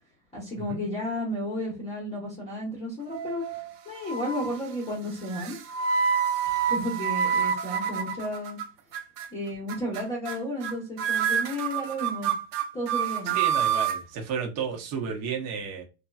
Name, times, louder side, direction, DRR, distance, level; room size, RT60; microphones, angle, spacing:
voice 1, 0.3-3.4 3.8-5.6 6.7-8.6 9.3-12.3 12.7-13.4, left 1 dB, 15° left, -5 dB, 1.0 m, -32 dB
sound 1, 3.1-3.7 4.1-4.6 5.3-8.6 8.9-9.3 9.7-10.0 10.3-10.4 10.6-10.7 11.0-14.0, right 7 dB, 80° right, 0.8 m, -27 dB
voice 2, 13.3-15.8, right 6 dB, 35° right, 1 dB, 1.0 m, -32 dB
2.9 x 2.8 x 2.3 m, 0.29 s
supercardioid pair, 135°, 47 cm